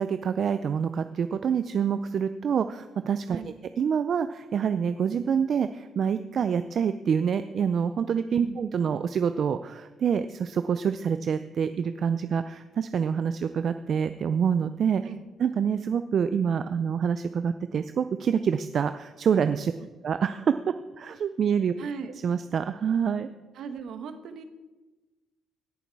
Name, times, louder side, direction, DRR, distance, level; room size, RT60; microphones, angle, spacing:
voice 1, 0.0-3.4 3.8-15.0 15.4-19.7 20.0-21.7 22.2-23.3, right 7 dB, 55° right, 11 dB, 0.4 m, -26 dB
voice 2, 21.8-22.1 23.5-24.4, right 6 dB, 75° right, 9 dB, 1.2 m, -37 dB
17.0 x 7.1 x 4.7 m, 1.2 s
cardioid pair, 90°, 0 cm